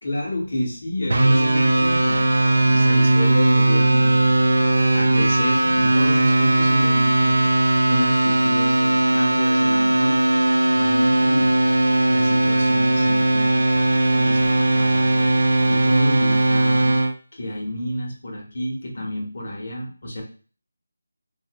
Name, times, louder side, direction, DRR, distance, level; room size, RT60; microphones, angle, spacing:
voice 1, 0.0-2.2 2.7-4.4 4.9-7.5 7.9-10.2 10.7-11.6 12.1-13.6 14.1-15.3 15.7-16.9 17.3-20.2, left 1 dB, 55° left, -1 dB, 1.2 m, -29 dB
sound 1, 1.1-17.1, right 2 dB, 75° right, 0.4 m, -18 dB
2.8 x 2.6 x 2.9 m, 0.40 s
figure-of-eight pair, 170°, 0 cm